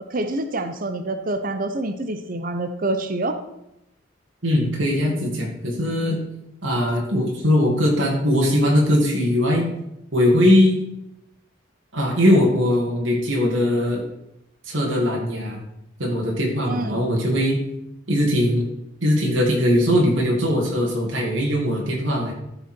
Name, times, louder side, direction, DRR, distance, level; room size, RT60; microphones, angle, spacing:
voice 1, 0.1-3.4 16.7-17.1, right 2 dB, 45° right, 8 dB, 0.8 m, -26 dB
voice 2, 4.4-6.2 6.6-9.6 10.1-10.8 11.9-14.0 14.6-15.6 16.0-17.6 18.1-18.6 19.0-22.3, left 1 dB, 85° right, -2 dB, 2.3 m, -20 dB
14.0 x 5.7 x 4.5 m, 0.85 s
head